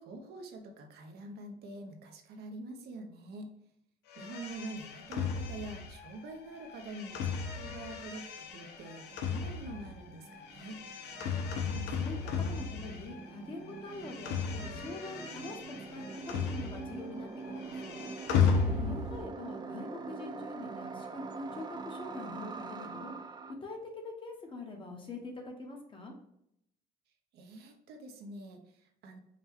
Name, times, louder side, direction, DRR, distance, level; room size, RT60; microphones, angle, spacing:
voice 1, 0.0-3.5 4.2-10.8 18.6-19.0 27.3-29.2, right 2 dB, 75° right, 4 dB, 0.8 m, -45 dB
sound 1, 4.1-13.4 13.6-17.1 17.4-19.3, left 6 dB, 80° left, 0.6 m, -35 dB
sound 2, 8.3-23.5, right 4 dB, 25° right, 0.4 m, -45 dB
voice 2, 11.6-18.1 19.1-23.1 23.5-26.1, left 2 dB, 30° left, 2 dB, 1.0 m, -44 dB
4.9 x 2.2 x 3.5 m, 0.75 s
cardioid pair, 110°, 17 cm